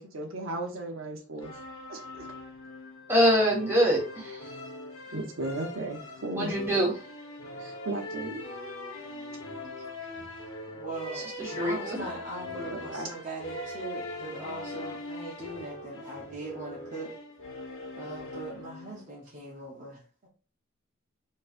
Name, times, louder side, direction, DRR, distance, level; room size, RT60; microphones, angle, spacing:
voice 1, 0.0-1.6 1.9-2.3 5.1-6.5 7.5-8.4 12.6-13.2, right 2 dB, 70° right, 0.8 m, -36 dB
sound 1, 1.4-19.1, left 2 dB, 80° left, 1.2 m, -41 dB
voice 2, 3.1-4.6 6.3-7.0 11.1-12.0, equal, 10° right, 1.5 m, -25 dB
voice 3, 10.7-17.1 18.0-20.3, right 2 dB, 40° right, 0.9 m, -40 dB
4.4 x 3.1 x 2.5 m
head